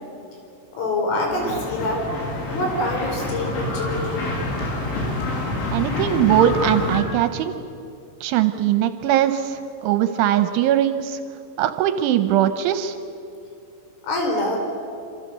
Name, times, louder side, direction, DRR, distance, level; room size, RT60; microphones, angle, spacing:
voice 1, 0.7-2.1 2.5-4.3 14.0-14.6, left 1 dB, 65° left, 2 dB, 6.7 m, -25 dB
sound 1, 1.3-7.0, left 2 dB, 80° left, 6.8 m, -27 dB
voice 2, 5.7-7.5 8.2-11.2 11.6-13.0, right 11 dB, 80° right, 9 dB, 3.0 m, -20 dB
27.0 x 26.0 x 6.7 m, 2.6 s
omnidirectional pair, 5.9 m